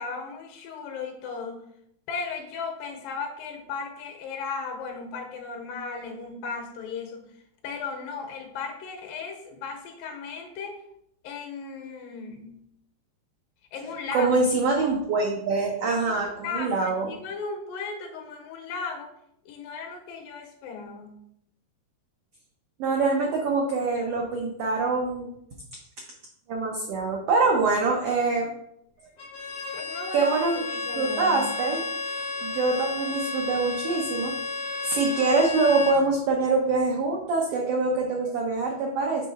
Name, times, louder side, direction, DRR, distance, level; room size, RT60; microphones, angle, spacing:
voice 1, 0.0-1.6 2.1-7.3 7.6-10.8 11.2-12.6 13.7-14.4 16.1-16.2 16.4-19.1 19.5-21.2 29.7-30.3 30.6-31.5, left 5 dB, 85° left, 4 dB, 2.7 m, -36 dB
voice 2, 14.1-17.1 22.8-25.3 26.5-28.5 30.1-30.5 30.9-31.8 32.4-34.3 34.8-39.3, right 3 dB, 90° right, 0 dB, 1.3 m, -24 dB
Bowed string instrument, 29.2-36.0, left 3 dB, 55° left, 1.4 m, -32 dB
6.6 x 3.1 x 5.4 m, 0.75 s
omnidirectional pair, 3.9 m